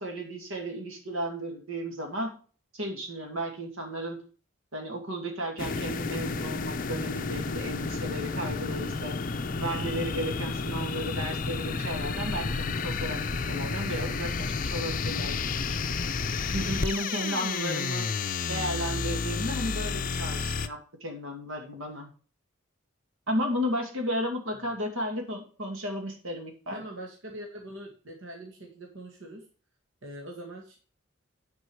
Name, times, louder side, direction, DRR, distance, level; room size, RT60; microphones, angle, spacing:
voice 1, 0.0-2.3 2.7-4.2 4.7-9.2 9.6-16.0 16.5-18.1 18.5-22.1 23.3-26.8, equal, 80° right, 3 dB, 2.3 m, -34 dB
sound 1, 5.6-20.7, left 4 dB, 40° left, 0.6 m, -31 dB
voice 2, 26.7-29.5 30.0-30.8, right 1 dB, 65° right, 0 dB, 1.9 m, -43 dB
9.9 x 5.3 x 4.7 m, 0.39 s
head